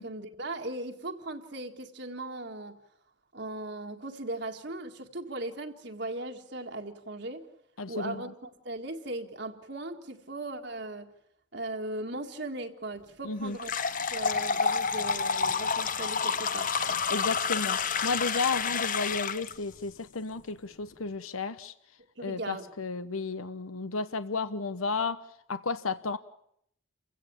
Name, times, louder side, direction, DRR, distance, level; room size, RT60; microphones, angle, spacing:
voice 1, 0.0-2.8 3.3-7.5 7.9-11.1 11.5-13.7 14.1-16.7 22.2-22.7, right 2 dB, 55° right, 1.9 m, -38 dB
voice 2, 7.8-8.3 13.2-13.6 17.1-21.7 22.2-25.2 25.5-26.2, left 4 dB, 90° left, 1.1 m, -33 dB
sound 1, 13.6-19.5, left 5 dB, 40° left, 1.1 m, -29 dB
28.5 x 16.5 x 8.7 m
head